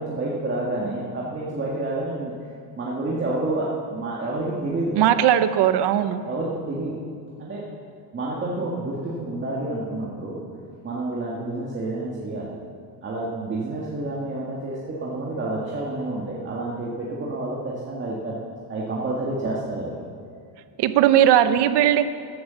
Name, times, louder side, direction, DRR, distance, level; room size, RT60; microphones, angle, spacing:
voice 1, 0.0-2.3 2.8-5.0 6.2-7.0 7.4-7.6 8.1-10.4 10.8-12.5 13.0-18.3 18.7-20.0, right 2 dB, 25° right, -5 dB, 1.8 m, -29 dB
voice 2, 5.0-6.2 20.8-22.0, right 11 dB, 65° right, 11 dB, 0.9 m, -18 dB
14.0 x 11.0 x 6.9 m, 2.2 s
cardioid pair, 155°, 43 cm